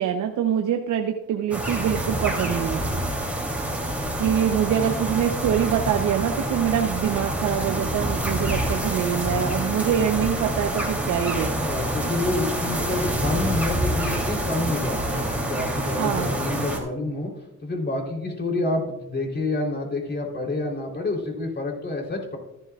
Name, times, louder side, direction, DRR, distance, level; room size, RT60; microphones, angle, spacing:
voice 1, 0.0-3.0 4.2-11.5 16.0-16.3, right 9 dB, 75° right, 3 dB, 0.9 m, -24 dB
sound 1, 1.5-16.8, right 1 dB, 5° right, 3.1 m, -27 dB
voice 2, 11.6-17.3 17.6-22.4, left 2 dB, 35° left, 0 dB, 3.6 m, -28 dB
14.0 x 12.0 x 2.4 m, 0.92 s
cardioid pair, 90°, 30 cm